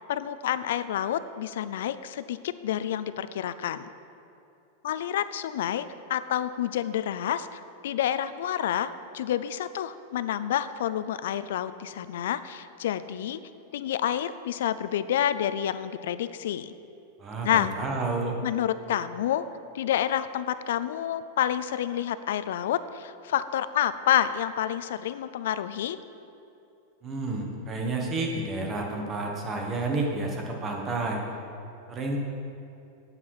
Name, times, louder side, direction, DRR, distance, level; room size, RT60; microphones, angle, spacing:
voice 1, 0.1-3.9 4.8-13.4 13.7-16.7 17.4-17.7 18.4-19.5 19.7-26.0, left 10 dB, 75° left, 14 dB, 0.5 m, -29 dB
voice 2, 17.2-18.4 27.0-31.2 31.9-32.2, right 3 dB, 20° right, 1 dB, 1.4 m, -30 dB
9.8 x 8.9 x 4.8 m, 2.7 s
supercardioid pair, 160°, 0 cm